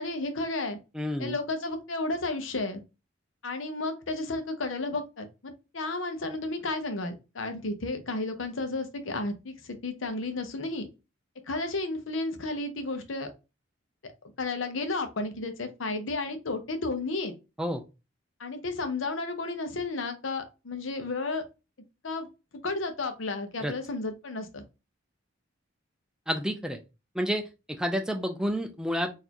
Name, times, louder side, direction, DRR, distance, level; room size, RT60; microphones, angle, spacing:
voice 1, 0.0-0.8 1.2-2.8 3.4-10.9 11.5-13.3 14.0-14.1 14.4-17.3 18.4-21.4 22.0-22.3 22.6-24.6, left 2 dB, 80° left, 0.8 m, -32 dB
voice 2, 0.9-1.4 17.6-17.8 23.6-23.7 26.3-26.8 27.1-29.1, equal, 5° right, 0.4 m, -30 dB
4.1 x 2.6 x 2.9 m
head